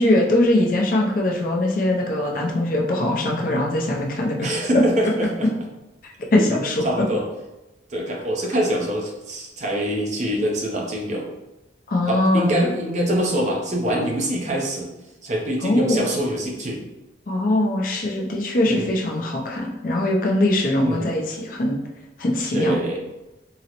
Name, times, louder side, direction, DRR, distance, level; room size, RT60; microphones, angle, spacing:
voice 1, 0.0-4.5 6.3-6.8 11.9-12.6 15.6-16.0 17.3-21.8 22.2-22.8, left 1 dB, 45° left, -1 dB, 0.5 m, -21 dB
voice 2, 4.4-5.5 6.3-6.4 6.8-7.3 7.9-11.3 12.1-14.9 15.2-16.8 18.7-18.9 20.8-21.1 22.5-23.1, right 1 dB, 40° right, -1 dB, 0.5 m, -24 dB
3.8 x 2.0 x 2.8 m, 1.0 s
head